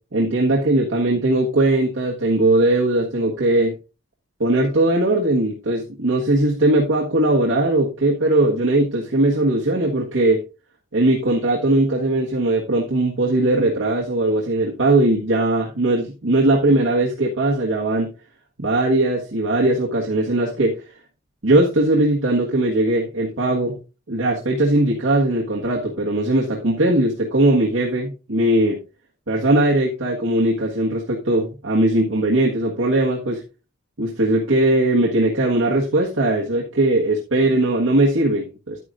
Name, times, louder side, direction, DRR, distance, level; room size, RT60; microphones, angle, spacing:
voice 1, 0.1-3.8 4.4-10.4 10.9-18.1 18.6-20.9 21.4-23.8 24.1-28.8 29.3-33.4 34.0-38.8, right 1 dB, 85° right, -4 dB, 1.6 m, -19 dB
10.0 x 9.6 x 2.5 m, 0.30 s
head